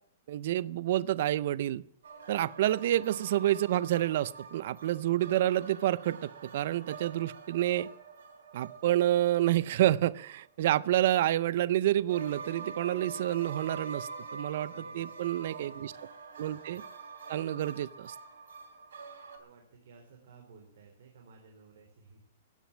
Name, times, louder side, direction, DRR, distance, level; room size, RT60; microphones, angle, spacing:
voice 1, 0.3-1.8 2.3-7.9 8.5-15.9 16.4-16.8 17.3-18.1, right 13 dB, 45° right, 21 dB, 0.5 m, -28 dB
sound 1, 2.0-10.7 12.1-19.4, right 4 dB, 85° right, 3.2 m, -45 dB
voice 2, 14.7-15.1 15.6-16.0 19.2-22.4, right 4 dB, 60° right, 2 dB, 3.7 m, -56 dB
15.0 x 10.5 x 7.3 m, 0.69 s
hypercardioid pair, 180°, 0 cm